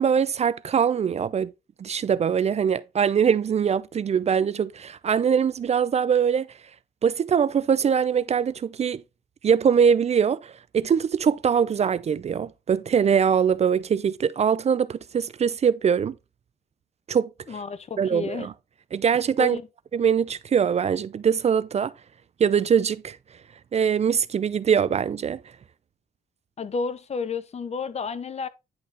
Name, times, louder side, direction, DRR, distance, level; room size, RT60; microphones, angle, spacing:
voice 1, 0.0-1.5 1.8-6.5 7.0-9.0 9.4-16.1 17.1-17.6 18.0-18.5 18.9-19.6 19.9-21.9 22.4-23.2 23.7-25.4, right 7 dB, 40° right, 0.5 m, -22 dB
voice 2, 17.5-18.5 19.4-19.6 26.6-28.5, left 5 dB, 40° left, 0.8 m, -31 dB
10.0 x 4.1 x 3.9 m
cardioid pair, 75°, 17 cm